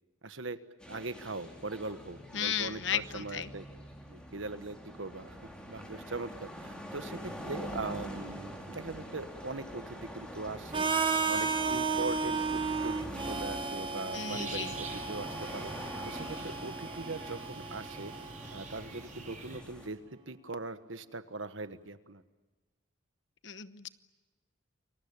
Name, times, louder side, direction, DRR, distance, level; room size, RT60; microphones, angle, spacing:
voice 1, 0.2-0.6 0.9-3.6 4.1-10.9 11.2-18.1 18.5-20.0 20.3-22.2, right 3 dB, 75° right, 11 dB, 1.4 m, -41 dB
sound 1, 0.8-19.9, equal, 5° left, 4.0 m, -45 dB
voice 2, 2.3-3.5 14.1-14.7 23.4-23.9, left 8 dB, 65° left, 13 dB, 1.0 m, -34 dB
Harmonica, 10.7-18.6, right 4 dB, 25° right, 1.2 m, -34 dB
sound 2, 14.3-19.6, right 3 dB, 40° right, 6.5 m, -46 dB
29.0 x 23.0 x 8.7 m, 1.2 s
head